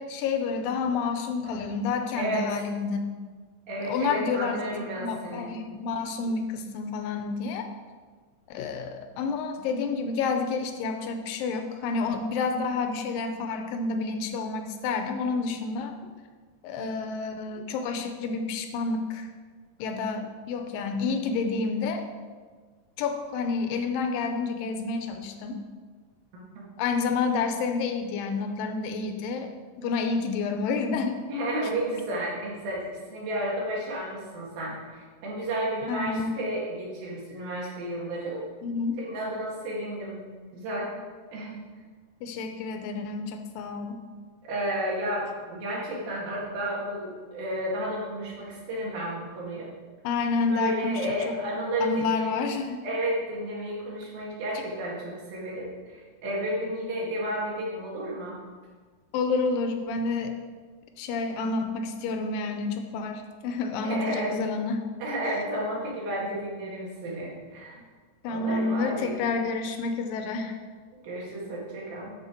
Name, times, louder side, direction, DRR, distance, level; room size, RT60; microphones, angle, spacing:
voice 1, 0.0-3.1 3.8-7.7 8.5-15.9 16.6-19.3 19.8-22.0 23.0-25.6 26.8-29.5 29.8-31.2 35.9-36.3 38.6-39.0 42.2-44.0 50.0-51.3 51.8-52.8 59.1-60.4 61.0-64.8 68.2-70.6, left 4 dB, 80° left, 6 dB, 2.5 m, -29 dB
voice 2, 2.2-2.6 3.7-5.5 26.3-26.4 31.3-38.4 39.0-40.2 40.5-40.9 41.3-41.6 44.4-49.7 50.5-52.5 52.8-58.4 63.8-64.3 65.0-67.8 68.3-69.1 71.0-72.2, right 1 dB, 85° right, -4 dB, 3.9 m, -32 dB
12.0 x 5.5 x 4.4 m, 1.5 s
omnidirectional pair, 4.1 m